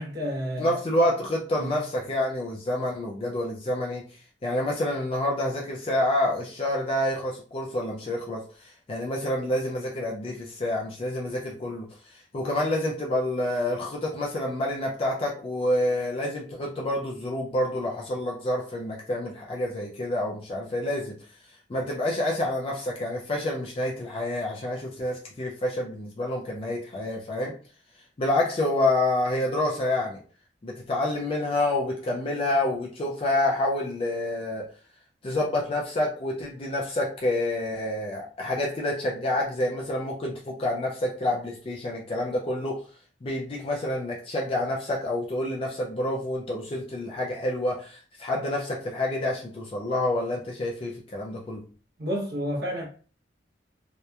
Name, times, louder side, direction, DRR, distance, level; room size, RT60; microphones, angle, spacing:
voice 1, 0.0-0.7 1.6-1.8 52.0-52.9, equal, 60° right, 0.8 m, -30 dB
voice 2, 0.6-4.0 4.4-21.2 21.7-27.5 28.2-30.2 30.6-34.6 35.2-42.8 43.2-51.6, left 1 dB, 30° left, 0.4 m, -28 dB
2.8 x 2.1 x 2.3 m
head